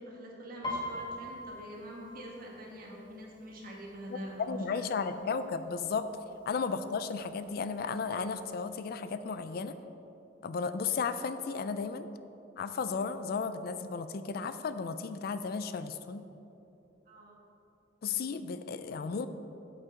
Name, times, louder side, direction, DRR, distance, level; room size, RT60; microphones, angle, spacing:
voice 1, 0.0-5.2 17.1-17.4, right 1 dB, 50° right, -2 dB, 1.6 m, -44 dB
Piano, 0.6-4.3 4.6-5.0 5.4-6.0 6.6-6.7 6.9-8.0 8.3-8.4, left 1 dB, 25° left, 1.3 m, -42 dB
voice 2, 4.1-6.1 6.5-9.8 10.4-12.1 12.6-16.2 18.0-19.3, left 5 dB, 55° left, 11 dB, 0.4 m, -34 dB
9.0 x 7.8 x 3.7 m, 2.9 s
head